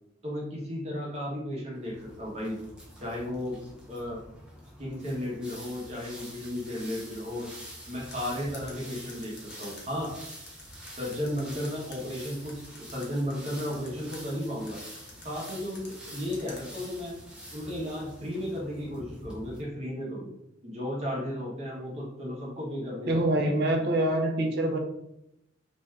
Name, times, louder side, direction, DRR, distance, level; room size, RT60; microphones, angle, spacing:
voice 1, 0.2-2.6 3.0-3.6 3.9-4.2 4.8-7.5 7.9-10.1 11.0-12.6 12.9-14.8 15.2-17.2 17.5-20.3 20.6-23.2, left 1 dB, 35° right, -4 dB, 0.9 m, -34 dB
sound 1, 1.8-19.6, equal, 5° right, 0.5 m, -46 dB
sound 2, 8.1-12.0 12.5-14.2 14.7-16.6, left 4 dB, 60° left, 0.7 m, -48 dB
voice 2, 23.0-24.8, right 1 dB, 55° right, 3 dB, 0.5 m, -25 dB
2.6 x 2.3 x 3.2 m, 0.81 s
head